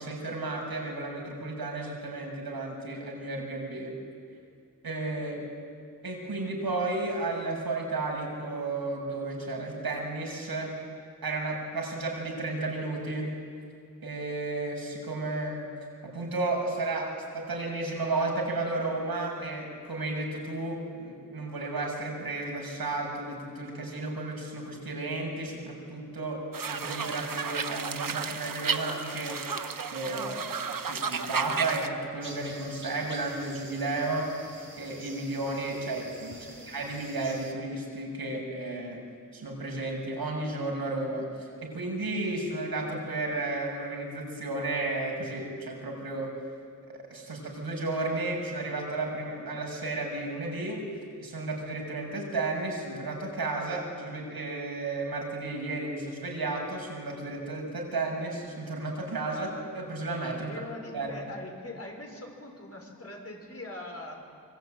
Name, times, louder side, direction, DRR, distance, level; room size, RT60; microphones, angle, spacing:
voice 1, 0.0-3.9 4.8-5.4 6.0-10.8 11.2-13.4 14.0-15.6 16.0-29.4 29.9-34.3 34.8-39.0 39.3-46.4 46.9-50.8 51.2-60.5 60.9-61.1, right 2 dB, 85° right, -1 dB, 6.8 m, -33 dB
voice 2, 5.1-5.5 36.3-36.7 60.3-64.1, left 2 dB, 40° left, 1 dB, 6.1 m, -43 dB
sound 1, 26.5-31.9, right 5 dB, 65° right, 1.3 m, -33 dB
sound 2, 32.2-37.5, right 2 dB, 35° right, 3.6 m, -47 dB
26.0 x 24.5 x 9.2 m, 2.3 s
wide cardioid pair, 80°, 36 cm